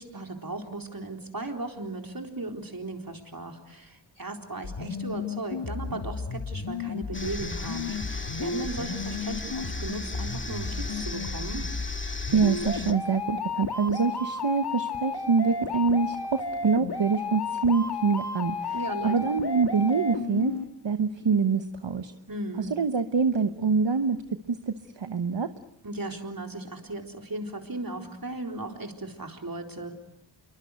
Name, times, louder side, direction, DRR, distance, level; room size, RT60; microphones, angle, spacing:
voice 1, 0.0-11.7 18.7-19.3 22.3-22.7 25.8-29.9, right 2 dB, 50° right, 3 dB, 4.1 m, -36 dB
sound 1, 4.6-20.6, left 4 dB, 60° left, 1.8 m, -33 dB
sound 2, 7.1-12.9, left 2 dB, 25° left, 2.1 m, -37 dB
voice 2, 12.3-20.6 20.8-22.1 22.6-24.2 24.5-25.5, right 5 dB, 70° right, 8 dB, 1.2 m, -25 dB
27.5 x 23.5 x 8.1 m, 0.74 s
wide cardioid pair, 50°, 45 cm